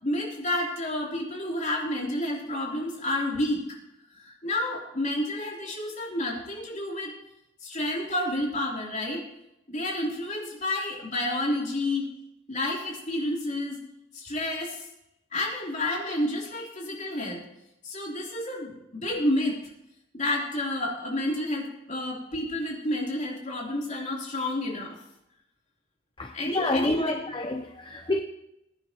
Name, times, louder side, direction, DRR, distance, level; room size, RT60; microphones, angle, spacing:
voice 1, 0.0-3.7 4.1-7.1 7.6-9.2 9.7-12.1 12.5-13.8 14.1-14.9 15.3-17.4 17.8-19.6 20.1-25.0 26.3-27.2, left 1 dB, 40° left, 3.4 m, -30 dB
voice 2, 26.2-28.2, left 2 dB, 25° left, 0.8 m, -28 dB
21.0 x 9.4 x 3.0 m
head